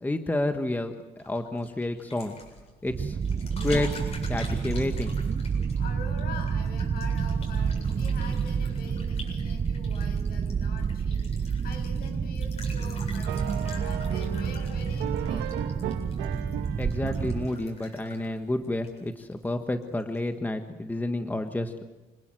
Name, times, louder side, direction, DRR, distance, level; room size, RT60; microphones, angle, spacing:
voice 1, 0.0-2.3 2.8-3.2 3.6-3.9 4.3-5.2 16.8-21.9, left 1 dB, 10° left, 7 dB, 1.4 m, -30 dB
sound 1, 1.2-19.5 19.8-20.2, left 2 dB, 40° left, 7.9 m, -47 dB
sound 2, 2.9-17.5, right 6 dB, 30° right, 0.9 m, -29 dB
voice 2, 5.7-15.9, left 4 dB, 65° left, 6 dB, 6.7 m, -44 dB
sound 3, 13.3-18.5, right 11 dB, 90° right, 1.5 m, -37 dB
26.5 x 19.0 x 7.8 m, 1.1 s
cardioid pair, 110°, 17 cm